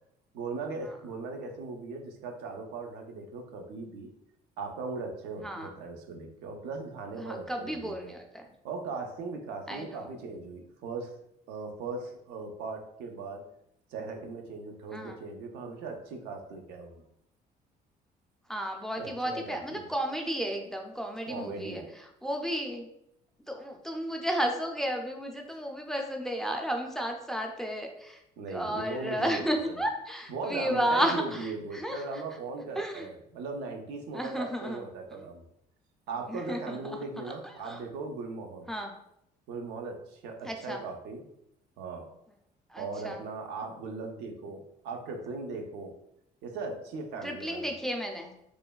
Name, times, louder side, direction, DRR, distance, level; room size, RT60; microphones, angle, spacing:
voice 1, 0.3-4.1 4.6-8.1 8.6-11.2 11.5-13.4 13.9-17.1 19.0-19.9 21.2-21.9 28.4-29.8 30.3-35.5 36.1-38.7 39.5-41.2 41.8-42.1 42.8-45.9 46.4-47.7, right 3 dB, 85° right, 4 dB, 0.5 m, -38 dB
voice 2, 5.4-5.7 7.2-8.4 9.7-10.1 14.9-15.2 18.5-21.8 22.2-22.9 23.5-28.2 28.5-32.0 32.8-33.1 34.1-34.8 35.1-35.3 36.3-37.0 37.4-37.8 38.7-38.9 40.5-40.8 42.7-43.2 47.2-48.4, equal, 5° left, 2 dB, 0.3 m, -33 dB
3.1 x 2.1 x 2.2 m, 0.78 s
cardioid pair, 110°, 17 cm